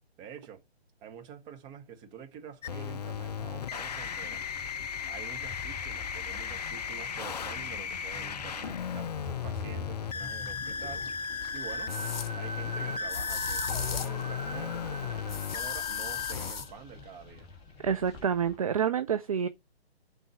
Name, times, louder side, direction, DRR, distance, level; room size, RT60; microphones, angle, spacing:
voice 1, 0.2-0.6 1.0-4.4 5.0-11.1 11.5-11.9 12.3-17.5, right 7 dB, 15° right, 0.9 m, -47 dB
sound 1, 2.6-16.5, left 7 dB, 40° left, 0.4 m, -36 dB
sound 2, 3.1-18.6, left 1 dB, 15° left, 1.0 m, -43 dB
sound 3, 10.7-10.8 11.9-12.3 13.1-14.2 15.3-16.7, left 6 dB, 65° left, 0.9 m, -36 dB
voice 2, 17.8-19.5, right 7 dB, 35° right, 0.5 m, -28 dB
7.8 x 4.0 x 6.8 m
figure-of-eight pair, 140°, 32 cm